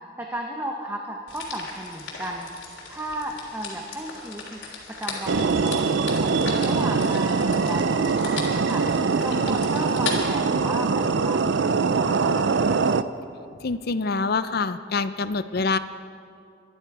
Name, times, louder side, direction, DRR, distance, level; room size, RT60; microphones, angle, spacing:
voice 1, 0.2-2.5 2.9-4.6 5.0-12.3, right 1 dB, 10° right, 1 dB, 0.9 m, -34 dB
sound 1, 1.3-10.2, left 5 dB, 75° left, 3.4 m, -37 dB
sound 2, 5.3-13.0, right 4 dB, 65° right, 0.5 m, -23 dB
voice 2, 13.6-15.8, left 4 dB, 50° left, 12 dB, 0.6 m, -25 dB
24.5 x 11.0 x 4.8 m, 2.4 s
head